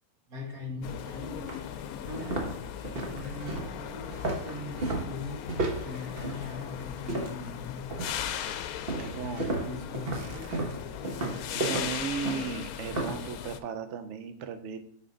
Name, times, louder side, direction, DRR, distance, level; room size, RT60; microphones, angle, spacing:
voice 1, 0.3-1.5 2.0-5.4 5.7-7.9 9.1-10.8, left 3 dB, 80° right, 0 dB, 2.1 m, -41 dB
sound 1, 0.8-13.6, left 9 dB, 80° left, 1.0 m, -38 dB
sound 2, 0.9-1.0 1.5-1.6 2.0-7.5 7.9-8.3 8.9-13.3, right 2 dB, 45° right, 1.3 m, -33 dB
voice 2, 9.0-9.9 11.5-14.8, right 6 dB, 60° right, 9 dB, 0.9 m, -36 dB
8.6 x 4.4 x 4.0 m, 0.68 s
omnidirectional pair, 1.5 m